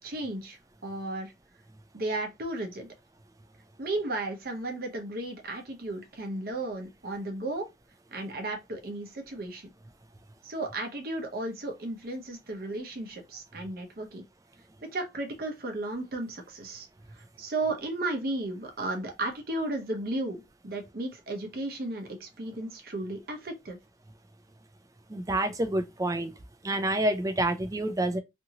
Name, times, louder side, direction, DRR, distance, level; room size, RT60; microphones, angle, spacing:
voice 1, 0.0-1.3 1.9-2.9 3.8-7.7 8.1-9.7 10.4-14.2 14.9-16.9 17.2-23.8, right 2 dB, 55° right, 0.7 m, -34 dB
voice 2, 25.1-26.3 26.6-28.2, right 1 dB, 20° right, 0.3 m, -28 dB
2.8 x 2.6 x 2.7 m
head